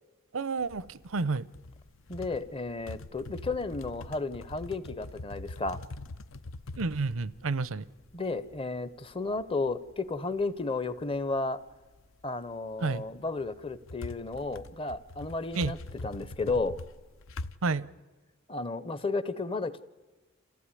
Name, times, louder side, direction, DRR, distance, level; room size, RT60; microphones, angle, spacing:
voice 1, 0.3-1.4 6.8-7.9 12.8-13.0 15.5-15.8 17.6-17.9, right 3 dB, 85° right, 0.7 m, -30 dB
sound 1, 0.6-11.4 11.7-12.5 12.9-17.5, left 2 dB, 75° left, 0.7 m, -44 dB
voice 2, 2.1-5.8 8.1-11.6 12.2-15.8 16.0-16.8 18.5-19.8, left 3 dB, 25° left, 0.7 m, -33 dB
28.0 x 15.5 x 9.8 m
head